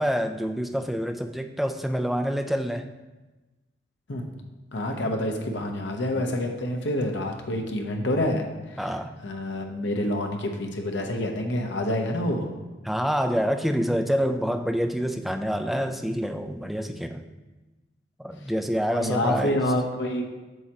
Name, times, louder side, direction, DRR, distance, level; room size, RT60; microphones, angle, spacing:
voice 1, 0.0-2.9 8.8-9.1 12.8-17.2 18.2-19.6, equal, ahead, 6 dB, 0.3 m, -27 dB
voice 2, 4.7-9.0 9.2-12.5 18.9-20.2, left 1 dB, 75° left, 3 dB, 0.9 m, -27 dB
7.9 x 6.2 x 3.0 m, 1.2 s
head